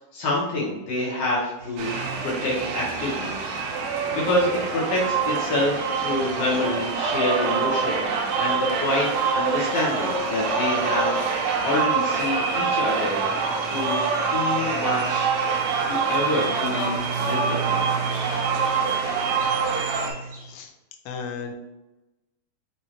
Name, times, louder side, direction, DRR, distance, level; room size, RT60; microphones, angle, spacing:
voice 1, 0.1-3.4 4.1-13.2 13.6-14.0 14.3-15.3 15.9-17.9, left 1 dB, 65° left, -6 dB, 2.5 m, -27 dB
sound 1, 1.6-20.5, right 5 dB, 60° right, 2.5 m, -39 dB
sound 2, 1.8-20.1, right 5 dB, 85° right, 2.1 m, -25 dB
voice 2, 21.1-21.5, left 5 dB, 85° left, 4 dB, 2.6 m, -35 dB
6.4 x 2.7 x 2.9 m, 1.0 s
omnidirectional pair, 4.6 m